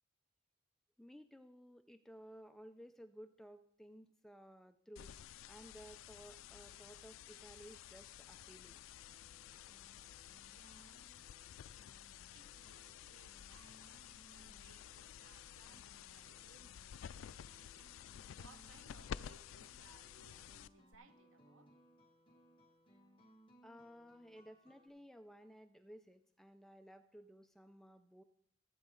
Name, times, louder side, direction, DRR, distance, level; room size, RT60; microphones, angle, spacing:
voice 1, 1.0-8.8 23.6-28.2, equal, ahead, 0.4 m, -57 dB
sound 1, 5.0-21.0, left 9 dB, 85° left, 0.3 m, -52 dB
sound 2, 8.9-24.9, equal, 25° left, 1.7 m, -68 dB
voice 2, 10.4-11.0 12.3-21.7, right 4 dB, 90° right, 0.9 m, -66 dB
16.0 x 8.1 x 3.8 m
head